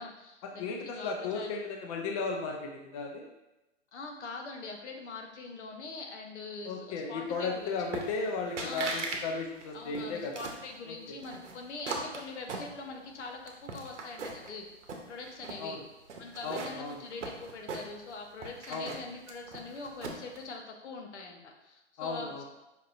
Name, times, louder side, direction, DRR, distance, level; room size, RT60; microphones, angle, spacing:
voice 1, 0.0-1.5 3.9-7.9 8.6-9.0 9.7-14.7 15.1-15.8 16.2-22.4, left 3 dB, 75° left, 2 dB, 0.9 m, -43 dB
voice 2, 0.6-3.3 6.6-10.3 10.9-11.2 15.6-15.8 16.4-17.0 18.7-18.9 22.0-22.4, left 4 dB, 35° left, 1 dB, 0.4 m, -35 dB
sound 1, 7.9-8.3 8.6-9.2 9.5-10.6 11.2-13.1 13.5-14.5 14.8-15.6 16.1-18.1 18.4-20.4, right 3 dB, 85° right, 0.8 m, -39 dB
5.3 x 2.8 x 2.5 m, 0.98 s
hypercardioid pair, 125°, 35 cm